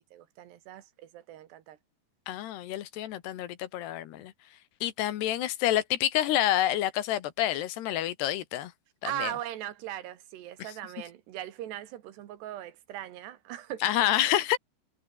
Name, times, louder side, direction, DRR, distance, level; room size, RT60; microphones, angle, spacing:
voice 1, 0.0-1.8 9.0-13.9, right 12 dB, 80° right, 3.7 m, -39 dB
voice 2, 2.3-4.3 4.8-8.7 9.0-9.3 13.8-14.6, left 13 dB, 80° left, 3.5 m, -28 dB
omnidirectional pair, 4.8 m